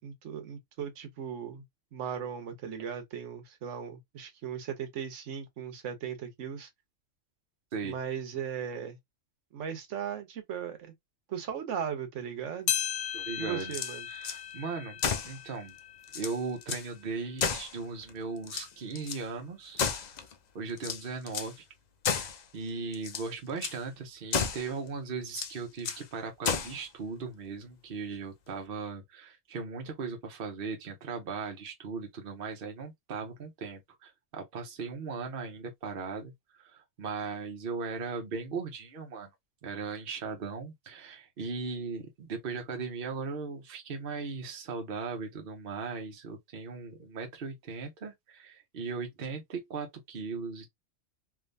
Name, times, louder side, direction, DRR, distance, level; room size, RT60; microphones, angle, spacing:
voice 1, 0.0-1.6 1.9-6.7 7.8-9.0 9.5-10.9 11.3-12.7 13.4-14.1, right 8 dB, 70° right, 1.2 m, -37 dB
sound 1, 12.7-17.3 17.8-17.9 18.7-18.8 19.8-19.9, left 10 dB, 75° left, 0.9 m, -37 dB
voice 2, 13.1-13.7 14.1-15.0 15.2-15.7 16.1-20.1 20.5-21.6 22.1-39.3 39.6-50.7, right 4 dB, 50° right, 0.9 m, -38 dB
sound 2, 13.6-14.4 15.0-15.4 15.8-15.9 16.1-16.9 17.4-18.1 18.4-19.2 19.8-20.3 20.8-21.6 22.0-22.4 22.9-23.3 23.6-23.8 24.3-24.7 25.3-26.1 26.4-26.8, left 6 dB, 60° left, 0.4 m, -32 dB
3.4 x 2.7 x 2.6 m
omnidirectional pair, 1.3 m